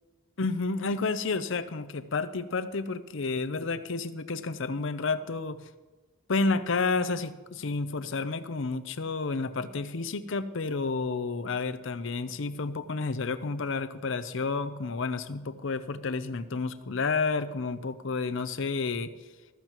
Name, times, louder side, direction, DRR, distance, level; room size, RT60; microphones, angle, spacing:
voice 1, 0.4-5.6 6.3-19.1, left 4 dB, 65° left, 11 dB, 0.7 m, -30 dB
14.5 x 14.0 x 3.0 m, 1.2 s
head